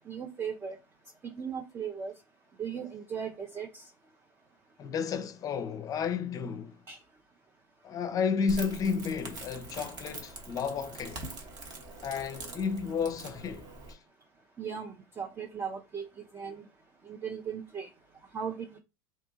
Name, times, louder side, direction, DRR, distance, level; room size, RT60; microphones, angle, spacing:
voice 1, 0.1-0.8 1.2-2.1 2.6-3.9 6.9-7.0 14.6-16.1 16.3-16.7 17.0-17.9 18.3-18.8, right 7 dB, 20° right, 0.5 m, -37 dB
voice 2, 4.8-6.8 7.8-11.3 12.0-14.0, left 6 dB, 30° left, 0.5 m, -32 dB
Crackle, 8.5-13.9, right 2 dB, 40° right, 0.9 m, -44 dB
2.7 x 2.6 x 2.5 m
hypercardioid pair, 90°, 12 cm